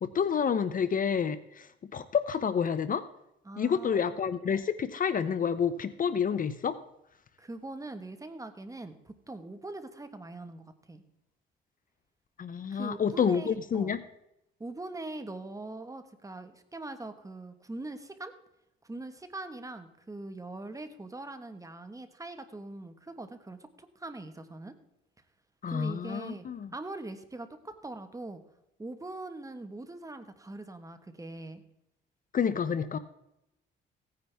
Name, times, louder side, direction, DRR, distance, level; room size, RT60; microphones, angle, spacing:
voice 1, 0.0-3.0 3.6-6.8 12.4-14.0 25.6-26.7 32.3-33.0, left 7 dB, 45° left, 14 dB, 0.7 m, -29 dB
voice 2, 3.4-4.0 7.4-11.0 12.7-13.9 14.6-18.3 18.8-23.7 23.9-24.7 25.7-26.5 26.7-28.4 28.8-31.6, right 2 dB, 15° right, 9 dB, 1.3 m, -42 dB
16.5 x 9.7 x 3.5 m, 0.85 s
cardioid pair, 90°, 20 cm